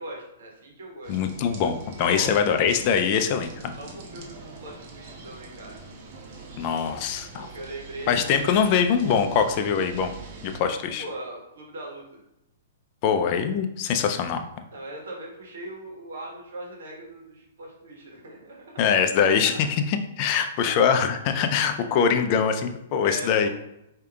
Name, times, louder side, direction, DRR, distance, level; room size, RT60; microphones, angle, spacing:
voice 1, 0.0-1.2 2.1-2.4 3.8-5.8 7.3-8.7 11.0-12.2 14.7-19.0 19.4-19.6 23.0-23.5, right 1 dB, 70° right, -1 dB, 1.3 m, -40 dB
sound 1, 1.0-10.6, right 3 dB, 50° right, 0.8 m, -43 dB
voice 2, 1.1-3.7 6.6-7.5 8.1-10.1 10.4-11.0 13.0-14.4 18.8-23.5, left 7 dB, 45° left, 7 dB, 0.4 m, -23 dB
4.7 x 2.7 x 2.3 m, 0.86 s
hypercardioid pair, 125°, 0 cm